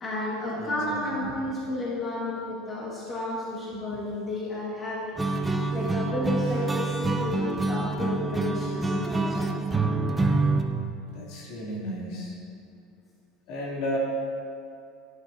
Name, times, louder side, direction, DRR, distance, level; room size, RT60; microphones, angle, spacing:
voice 1, 0.0-5.2 5.7-9.5, left 1 dB, 20° left, -7 dB, 1.8 m, -32 dB
voice 2, 0.6-1.3 11.1-12.4 13.5-14.0, left 1 dB, 55° left, -4 dB, 2.8 m, -34 dB
sound 1, 5.2-10.6, right 3 dB, 10° right, 0.6 m, -26 dB
15.5 x 11.5 x 2.7 m, 2.5 s
cardioid pair, 170°, 0 cm